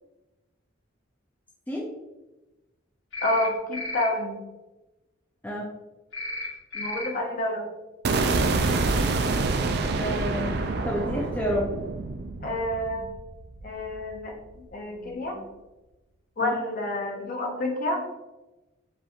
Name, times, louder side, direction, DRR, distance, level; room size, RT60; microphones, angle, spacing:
sound 1, 3.1-3.5 3.7-4.1 6.1-6.5 6.7-7.1, left 1 dB, 70° left, 1.3 m, -33 dB
voice 1, 3.2-4.4 6.7-7.7 12.4-13.1 13.6-15.5 16.4-18.1, left 1 dB, 45° left, 1 dB, 0.7 m, -29 dB
sound 2, 8.0-14.1, right 3 dB, 55° right, 0.3 m, -27 dB
voice 2, 10.0-10.6 10.8-11.7 16.4-16.5, equal, 10° left, -3 dB, 0.4 m, -29 dB
5.0 x 3.0 x 2.4 m, 1.1 s
head